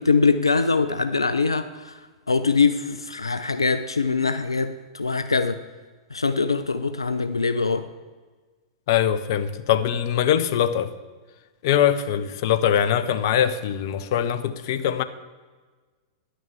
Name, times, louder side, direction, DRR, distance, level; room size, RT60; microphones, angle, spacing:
voice 1, 0.0-2.0 2.3-5.6 6.1-7.9, left 4 dB, 85° left, 0.5 m, -23 dB
voice 2, 8.9-10.9 11.6-15.0, left 9 dB, 55° left, 0.7 m, -22 dB
10.5 x 6.3 x 8.1 m
figure-of-eight pair, 100°, 2 cm